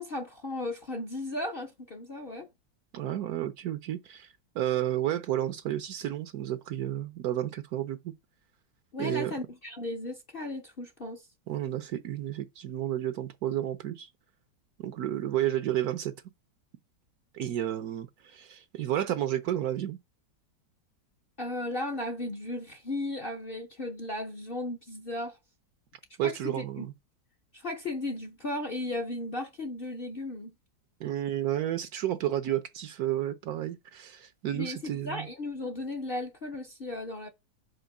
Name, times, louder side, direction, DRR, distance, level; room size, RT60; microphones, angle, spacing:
voice 1, 0.0-2.5 8.9-11.2 21.4-25.4 26.2-26.9 27.5-30.5 34.5-37.3, left 2 dB, 45° left, 0.8 m, -35 dB
voice 2, 2.9-4.3 4.5-8.1 9.0-9.3 11.5-14.1 14.8-16.1 17.3-20.0 26.2-26.9 31.0-35.3, right 12 dB, 65° right, 1.0 m, -31 dB
5.2 x 4.3 x 5.8 m
omnidirectional pair, 1.9 m